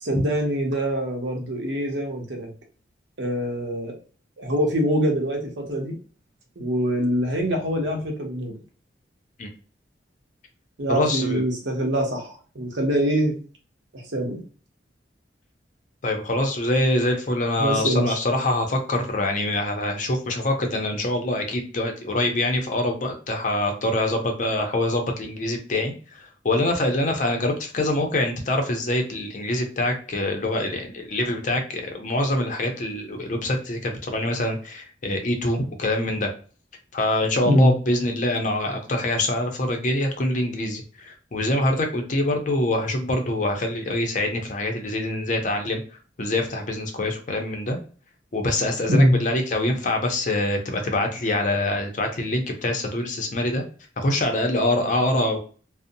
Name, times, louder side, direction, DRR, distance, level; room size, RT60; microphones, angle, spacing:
voice 1, 0.0-2.5 3.2-3.9 4.4-5.9 6.6-8.5 10.8-13.3 13.9-14.4 17.6-18.2 37.4-37.7 48.9-49.2, equal, 75° right, 2 dB, 0.8 m, -24 dB
voice 2, 10.9-11.4 16.0-36.3 36.9-45.8 46.2-47.8 48.3-53.6 54.0-55.4, left 1 dB, 45° left, 4 dB, 0.5 m, -25 dB
2.6 x 2.0 x 2.6 m, 0.39 s
head